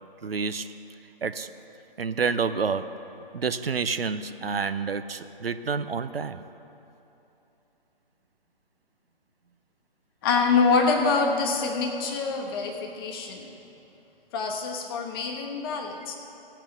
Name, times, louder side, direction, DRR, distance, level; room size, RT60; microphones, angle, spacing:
voice 1, 0.2-0.7 1.2-1.5 2.0-2.9 3.3-6.4, right 5 dB, 85° right, 11 dB, 0.6 m, -28 dB
voice 2, 10.2-13.5 14.3-16.2, left 4 dB, 25° left, 1 dB, 1.0 m, -25 dB
16.5 x 5.9 x 7.1 m, 2.9 s
figure-of-eight pair, 140°, 29 cm